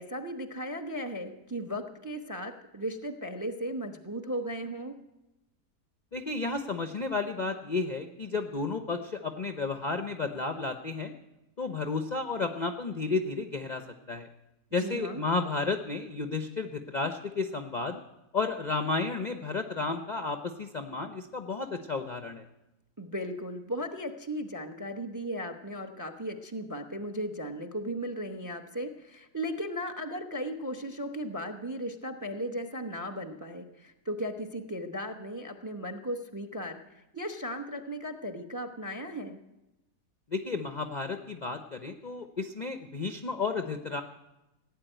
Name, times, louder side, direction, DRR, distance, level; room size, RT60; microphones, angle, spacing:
voice 1, 0.0-5.0 14.8-15.2 23.0-39.4, equal, 15° right, 7 dB, 0.7 m, -36 dB
voice 2, 6.1-11.1 11.6-13.8 14.1-14.3 14.7-18.0 18.3-22.4 40.3-44.0, left 3 dB, 40° left, 7 dB, 0.6 m, -32 dB
16.5 x 9.0 x 9.0 m, 0.96 s
omnidirectional pair, 1.7 m